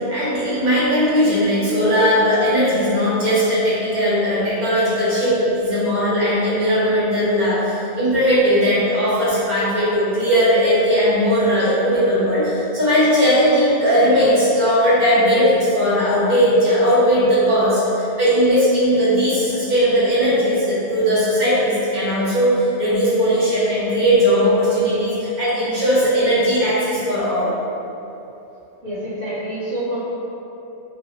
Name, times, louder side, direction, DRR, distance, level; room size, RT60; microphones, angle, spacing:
voice 1, 0.1-7.6 7.9-27.5, equal, 40° right, -10 dB, 1.0 m, -18 dB
voice 2, 28.8-30.0, right 1 dB, 85° right, -10 dB, 1.4 m, -27 dB
3.2 x 2.7 x 2.8 m, 2.9 s
omnidirectional pair, 1.2 m